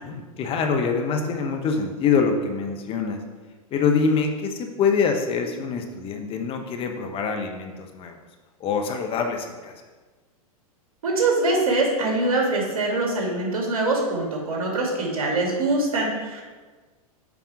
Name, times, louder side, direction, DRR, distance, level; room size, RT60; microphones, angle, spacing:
voice 1, 0.0-3.2 3.7-8.1 8.6-9.7, left 5 dB, 30° left, 5 dB, 0.9 m, -25 dB
voice 2, 11.0-16.4, right 2 dB, 75° right, -1 dB, 2.5 m, -23 dB
7.1 x 5.3 x 4.9 m, 1.3 s
hypercardioid pair, 115°, 19 cm